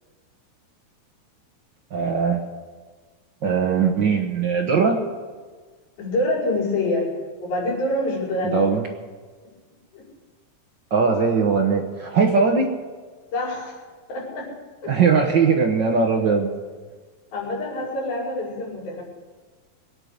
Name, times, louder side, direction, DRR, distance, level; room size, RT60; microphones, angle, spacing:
voice 1, 1.9-2.4 3.4-5.0 8.5-8.8 10.9-12.7 14.9-16.5, right 5 dB, 75° right, 1 dB, 1.0 m, -20 dB
voice 2, 6.0-7.1 7.4-8.7 9.9-10.1 13.3-13.8 14.1-14.5 14.8-14.9 17.3-19.0, left 1 dB, 80° left, -4 dB, 7.2 m, -26 dB
23.0 x 9.5 x 6.6 m, 1.4 s
omnidirectional pair, 4.1 m